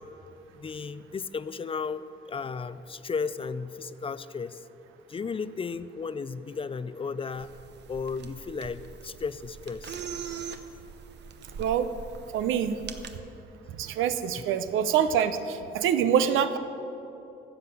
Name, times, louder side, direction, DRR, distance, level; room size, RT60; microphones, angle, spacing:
voice 1, 0.6-4.6 5.1-7.5 7.9-10.0, left 5 dB, 30° left, 14 dB, 0.4 m, -34 dB
sound 1, 7.3-13.2, right 6 dB, 60° right, 0.9 m, -42 dB
voice 2, 11.6-11.9 12.3-12.8 13.8-16.6, right 8 dB, 90° right, 11 dB, 0.7 m, -25 dB
13.0 x 7.8 x 6.8 m, 2.9 s
cardioid pair, 90°, 20 cm